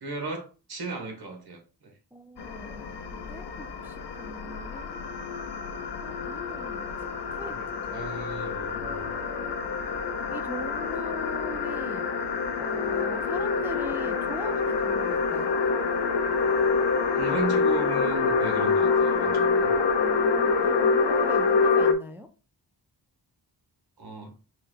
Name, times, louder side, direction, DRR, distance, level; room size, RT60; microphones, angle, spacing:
voice 1, 0.0-1.9 7.5-9.1 17.1-19.7 24.0-24.3, right 3 dB, 60° right, 1.3 m, -36 dB
voice 2, 2.1-5.1 6.0-6.9 7.4-7.8 8.8-9.6 10.3-12.1 12.6-15.6 20.0-22.3, equal, 5° right, 0.3 m, -41 dB
sound 1, 2.4-21.9, left 5 dB, 65° left, 0.6 m, -26 dB
4.2 x 2.2 x 3.9 m
wide cardioid pair, 110°, 44 cm